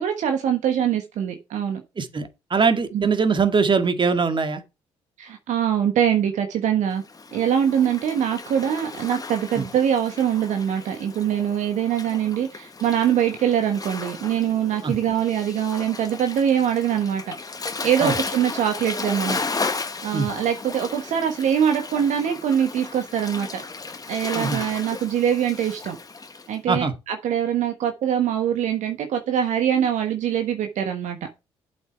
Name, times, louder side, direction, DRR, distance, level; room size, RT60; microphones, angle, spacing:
voice 1, 0.0-1.8 2.9-3.1 5.2-7.0 7.3-17.3 17.8-19.4 20.0-23.6 24.1-26.0 26.5-31.3, right 9 dB, 65° right, 1.4 m, -23 dB
voice 2, 2.0-4.6 9.6-9.7 14.8-14.9 18.0-18.1 20.1-20.3 24.3-24.6 26.7-26.9, right 5 dB, 40° right, 2.0 m, -22 dB
Waves surf, 7.0-26.5, left 4 dB, 30° left, 1.3 m, -34 dB
8.0 x 7.9 x 4.6 m
hypercardioid pair, 50°, 13 cm